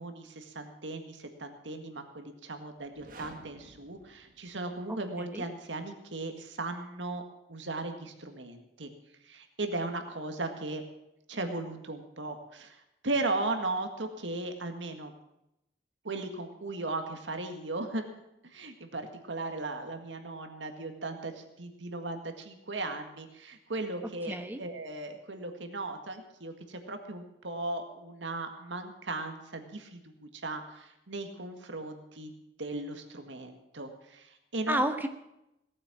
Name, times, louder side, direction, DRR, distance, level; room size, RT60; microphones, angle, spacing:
voice 1, 0.0-7.2 7.5-8.9 9.2-10.8 11.3-15.1 16.0-18.0 18.4-32.3 32.6-34.8, right 2 dB, 85° right, 6 dB, 1.8 m, -37 dB
sound 1, 2.8-4.9, right 2 dB, 45° right, 1.5 m, -53 dB
voice 2, 4.9-5.4 24.3-24.6 34.7-35.1, right 1 dB, 10° right, 7 dB, 1.1 m, -31 dB
18.0 x 8.6 x 7.4 m, 0.84 s
head